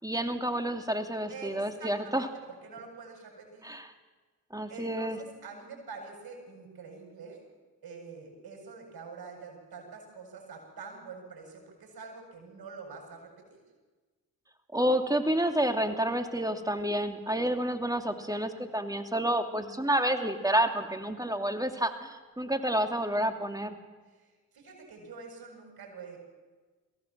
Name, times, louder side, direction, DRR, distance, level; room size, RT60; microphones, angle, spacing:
voice 1, 0.0-2.3 3.6-3.9 4.5-5.2 14.7-23.8, right 1 dB, 10° right, 6 dB, 2.7 m, -29 dB
voice 2, 1.3-3.7 4.7-7.4 7.8-13.6 24.5-26.2, right 4 dB, 55° right, 1 dB, 7.7 m, -46 dB
22.5 x 16.5 x 7.5 m, 1.3 s
hypercardioid pair, 40°, 44 cm